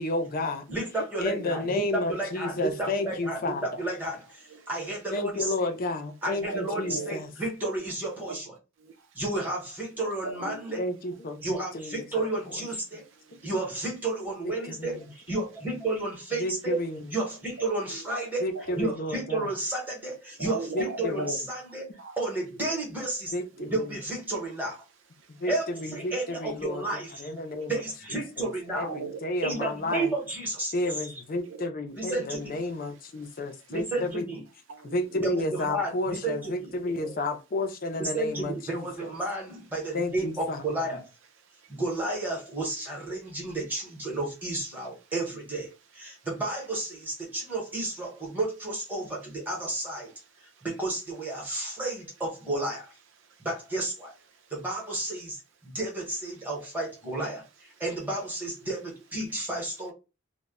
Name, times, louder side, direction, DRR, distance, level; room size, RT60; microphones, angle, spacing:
voice 1, 0.0-0.6 1.2-3.6 5.1-7.3 10.8-12.0 14.9-15.0 16.4-17.0 18.4-19.5 20.7-21.4 23.3-23.8 25.3-27.7 28.4-30.1 30.7-34.2 34.8-38.9 39.9-40.6, left 2 dB, 40° left, 0.4 m, -31 dB
voice 2, 0.7-5.7 6.2-8.5 9.1-10.8 11.4-13.0 13.4-15.0 15.3-18.5 18.7-23.3 23.7-24.8 25.5-27.4 27.7-28.9 29.4-30.7 31.9-32.5 33.7-34.4 35.2-36.7 38.0-41.1 41.7-50.1 50.4-53.0 53.4-54.1 54.5-59.9, right 2 dB, 10° right, 0.8 m, -32 dB
voice 3, 6.4-7.2 8.3-8.4 8.8-9.2 10.2-10.7 12.8-13.5 17.6-18.1 18.5-18.8 20.4-21.4 22.0-22.2 23.5-23.7 25.2-25.5 26.0-26.1 27.4-27.7 28.8-29.2 29.5-29.7 31.4-31.7 34.7-35.2 36.7-37.2 41.4-41.8 43.3-43.6 46.1-46.3 50.1-50.7 53.2-53.5 54.3-54.5 59.2-59.3, right 3 dB, 55° right, 0.5 m, -40 dB
2.1 x 2.0 x 3.5 m
head